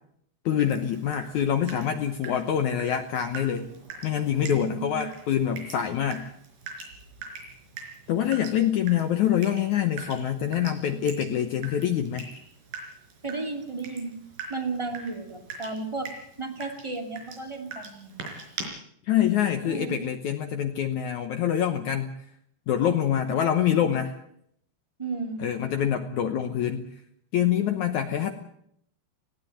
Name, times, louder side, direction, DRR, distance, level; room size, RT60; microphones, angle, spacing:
voice 1, 0.4-3.7 4.0-6.2 8.1-12.3 19.0-22.1 22.7-24.2 25.4-26.9 27.3-28.3, left 9 dB, 85° left, 7 dB, 1.6 m, -25 dB
Water tap faucet / Drip, 0.6-18.6, right 4 dB, 55° right, 6.1 m, -43 dB
voice 2, 4.5-5.1 13.2-14.1 14.5-16.1 16.4-18.2 19.6-20.0 25.0-25.4, right 3 dB, 15° right, 3 dB, 1.2 m, -33 dB
20.0 x 15.5 x 9.1 m, 0.70 s
omnidirectional pair, 5.0 m